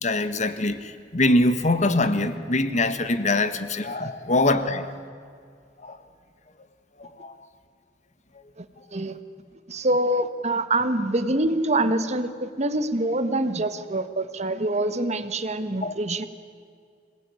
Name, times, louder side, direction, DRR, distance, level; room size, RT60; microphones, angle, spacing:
voice 1, 0.0-4.9 5.8-6.0 7.0-7.3 15.8-15.9, left 2 dB, 45° left, 11 dB, 1.5 m, -23 dB
voice 2, 9.7-16.2, right 1 dB, 40° right, 11 dB, 1.4 m, -25 dB
26.5 x 19.0 x 9.8 m, 2.3 s
head